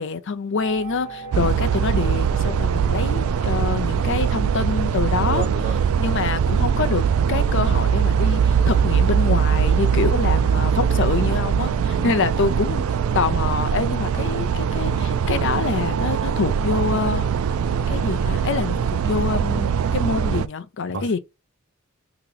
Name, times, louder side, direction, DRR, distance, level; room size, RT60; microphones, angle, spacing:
voice 1, 0.0-12.8 13.1-17.3 17.9-18.8 19.0-21.2, left 5 dB, 55° left, 0.4 m, -26 dB
sound 1, 0.6-4.3, right 3 dB, 30° left, 0.9 m, -40 dB
sound 2, 1.3-20.5, right 7 dB, 70° right, 0.3 m, -21 dB
voice 2, 5.2-5.8 10.4-10.6 12.0-12.3 20.9-21.2, right 2 dB, 55° right, 0.8 m, -30 dB
2.9 x 2.9 x 3.7 m
head